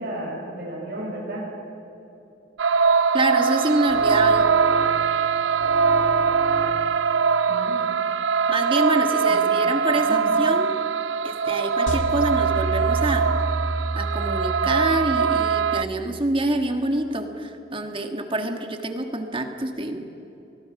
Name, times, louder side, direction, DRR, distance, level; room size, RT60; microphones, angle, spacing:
voice 1, 0.0-1.4 7.5-7.8 9.3-9.5 10.0-10.4, right 1 dB, 60° right, -4 dB, 7.0 m, -33 dB
sound 1, 2.6-15.8, right 6 dB, 75° right, 0.6 m, -22 dB
voice 2, 3.1-4.5 8.5-10.7 11.2-13.3 13.9-20.1, right 1 dB, 30° right, 5 dB, 1.6 m, -26 dB
sound 2, 3.9-5.3 5.6-7.1, left 1 dB, 10° left, 2.6 m, -34 dB
sound 3, 11.9-16.2, right 2 dB, 85° left, 2.3 m, -29 dB
24.5 x 20.5 x 6.0 m, 2.9 s
head